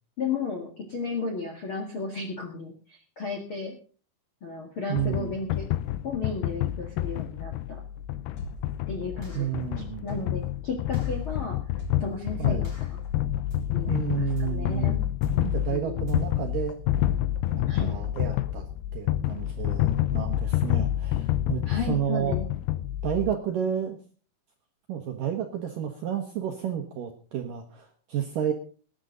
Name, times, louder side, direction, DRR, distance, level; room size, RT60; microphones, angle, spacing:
voice 1, 0.2-3.7 4.4-5.7 6.0-7.8 8.9-11.6 12.0-13.0 13.7-15.0 15.7-16.2 17.7-17.9 21.6-22.5, left 4 dB, 50° left, 1 dB, 1.6 m, -34 dB
voice 2, 4.9-5.3 9.3-10.1 12.4-12.7 13.9-15.0 15.4-16.8 17.5-18.7 18.9-22.4 23.0-24.0 24.9-28.5, right 9 dB, 70° right, 4 dB, 2.1 m, -31 dB
sound 1, 5.0-23.3, left 13 dB, 80° left, 2.3 m, -28 dB
sound 2, 8.4-8.8 9.2-9.6 10.1-10.5 10.9-11.2 11.8-12.2 12.6-13.0 13.5-13.9 14.4-14.8 15.2-15.6 16.1-16.5, right 2 dB, 20° left, 4.1 m, -41 dB
19.5 x 10.0 x 3.8 m, 0.40 s
omnidirectional pair, 5.4 m